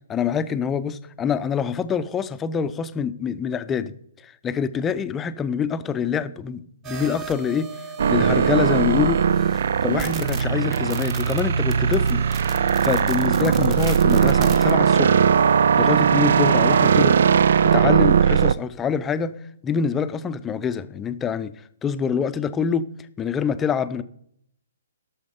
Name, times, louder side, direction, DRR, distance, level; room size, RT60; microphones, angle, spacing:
voice 1, 0.1-3.9 4.2-7.7 8.1-9.2 9.8-12.2 12.8-15.2 15.5-17.2 17.6-19.3 19.6-21.5 21.8-22.9 23.2-24.0, left 7 dB, 15° left, 0.5 m, -25 dB
sound 1, 6.8-14.7, right 6 dB, 25° right, 1.1 m, -39 dB
sound 2, 8.0-18.5, right 7 dB, 60° right, 0.3 m, -19 dB
13.0 x 6.4 x 5.0 m
figure-of-eight pair, 130°, 0 cm